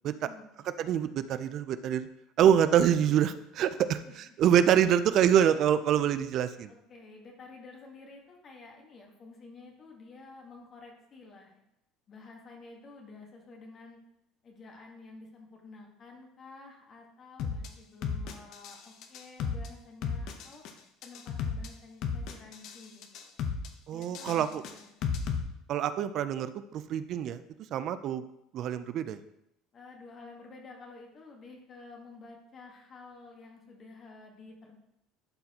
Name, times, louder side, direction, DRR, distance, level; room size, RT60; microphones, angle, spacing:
voice 1, 0.0-0.6 3.7-4.4 6.7-11.6 12.1-14.0 14.4-20.6 21.0-23.4 23.9-25.1 29.7-34.8, left 3 dB, 40° left, 1 dB, 1.4 m, -51 dB
voice 2, 0.8-2.1 2.4-6.7 23.9-24.6 25.7-27.4 27.7-28.2 28.5-29.2, right 9 dB, 55° right, 13 dB, 0.4 m, -26 dB
sound 1, 17.4-17.7 18.0-18.8 19.0-19.7 20.0-20.7 21.0-21.7 22.0-22.8 23.0-23.7 24.0-25.4, left 6 dB, 60° left, 0.8 m, -33 dB
11.5 x 4.1 x 2.9 m, 0.81 s
supercardioid pair, 110°, 0 cm